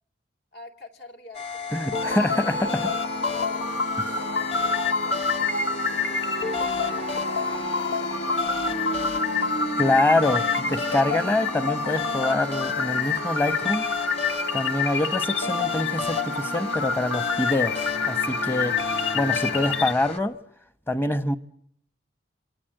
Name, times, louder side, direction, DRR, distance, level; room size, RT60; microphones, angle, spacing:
voice 1, 0.5-2.2 2.4-3.7 4.0-8.7 19.5-19.7, left 2 dB, 60° left, 3.0 m, -48 dB
sound 1, 1.3-20.2, left 3 dB, 35° left, 1.9 m, -33 dB
voice 2, 1.7-2.9 4.0-4.1 9.8-13.8 14.5-18.8 19.1-20.4 20.9-21.4, left 1 dB, 10° left, 1.0 m, -25 dB
sound 2, 1.9-19.9, left 4 dB, 85° left, 1.2 m, -27 dB
28.0 x 26.0 x 7.8 m
head